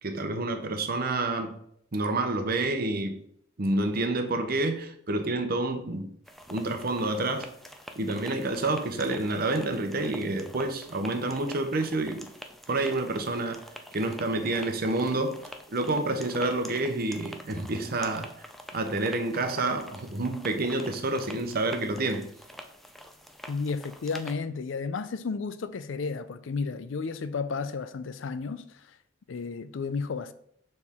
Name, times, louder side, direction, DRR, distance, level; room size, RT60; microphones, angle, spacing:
voice 1, 0.0-1.6 1.9-3.2 3.6-6.1 6.5-7.5 8.0-12.3 12.7-13.7 13.9-15.4 15.7-18.3 18.7-22.3, right 2 dB, 50° right, 0.8 m, -28 dB
sound 1, 6.3-24.3, equal, ahead, 0.4 m, -47 dB
voice 2, 23.5-29.0 29.3-30.3, left 4 dB, 75° left, 0.4 m, -33 dB
6.5 x 4.3 x 3.6 m
head